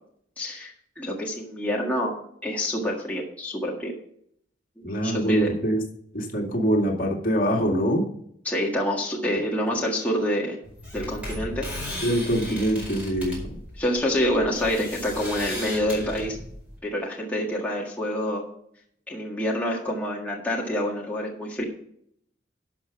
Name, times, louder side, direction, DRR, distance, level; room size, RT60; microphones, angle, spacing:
voice 1, 0.4-0.7 1.0-2.2 2.4-3.9 4.8-5.5 8.4-10.6 10.9-11.6 12.5-12.7 13.8-16.4 16.8-18.5 19.1-21.6, equal, 10° left, -3 dB, 1.7 m, -27 dB
voice 2, 4.8-5.8 6.1-8.0 12.0-13.6, right 1 dB, 50° left, 0 dB, 2.3 m, -24 dB
sound 1, 10.6-16.8, left 1 dB, 5° right, 4.9 m, -36 dB
12.0 x 5.8 x 5.6 m, 0.68 s
head